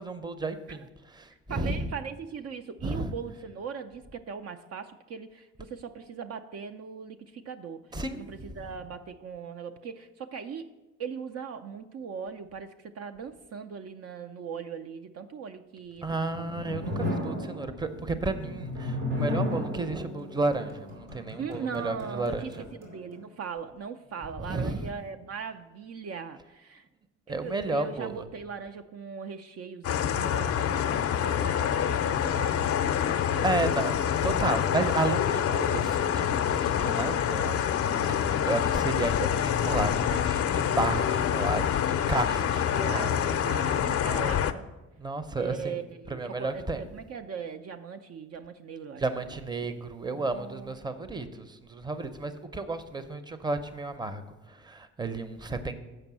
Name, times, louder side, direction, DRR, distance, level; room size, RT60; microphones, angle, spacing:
voice 1, 0.0-1.9 2.8-3.1 7.9-8.7 16.0-22.5 24.4-24.9 27.3-28.3 33.4-43.1 45.0-45.8 46.1-46.9 49.0-55.7, right 2 dB, 15° right, 10 dB, 0.6 m, -32 dB
voice 2, 1.5-7.9 8.1-10.7 11.0-16.5 21.4-26.9 27.4-33.5 42.1-42.4 42.7-44.6 45.4-49.0 50.1-50.8 51.0-51.1, right 6 dB, 55° right, 8 dB, 0.5 m, -39 dB
sound 1, 16.0-23.2, left 1 dB, 85° right, 2.9 m, -34 dB
sound 2, 29.8-44.5, left 9 dB, 50° left, 0.5 m, -26 dB
7.8 x 5.2 x 6.1 m, 1.1 s
cardioid pair, 90°, 30 cm